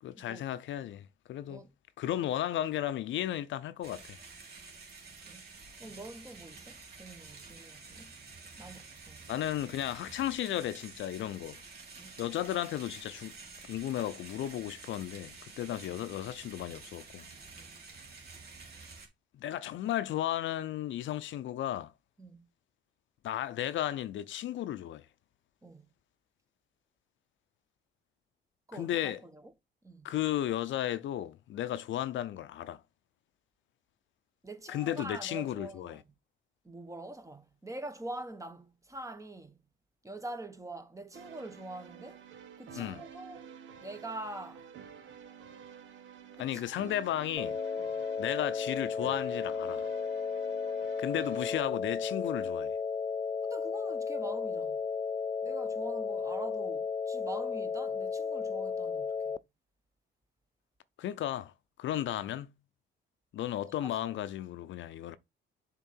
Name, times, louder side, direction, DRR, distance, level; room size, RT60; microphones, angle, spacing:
voice 1, 0.0-1.6 2.0-4.2 9.3-11.6 12.2-13.3 13.6-17.2 19.3-21.9 23.2-25.1 28.7-29.2 30.0-32.8 34.7-36.0 42.8-43.0 46.4-47.6 48.2-49.9 51.0-52.8 61.0-61.5 61.8-62.5 63.3-65.2, left 12 dB, 70° left, 0.6 m, -34 dB
sound 1, 3.8-19.1, right 4 dB, 55° right, 2.7 m, -50 dB
voice 2, 5.8-8.1 8.6-9.2 12.0-12.1 17.6-17.8 22.2-22.5 25.6-25.9 28.7-29.5 29.8-30.1 34.4-36.0 36.6-39.6 40.0-42.2 42.6-44.6 46.4-46.9 47.8-47.9 53.4-54.8 55.4-59.4 63.8-64.0, right 2 dB, 15° right, 1.2 m, -45 dB
sound 2, 41.1-51.6, right 7 dB, 75° right, 1.3 m, -50 dB
sound 3, 47.4-59.4, left 5 dB, 20° left, 0.4 m, -34 dB
6.9 x 3.7 x 4.4 m
cardioid pair, 90°, 20 cm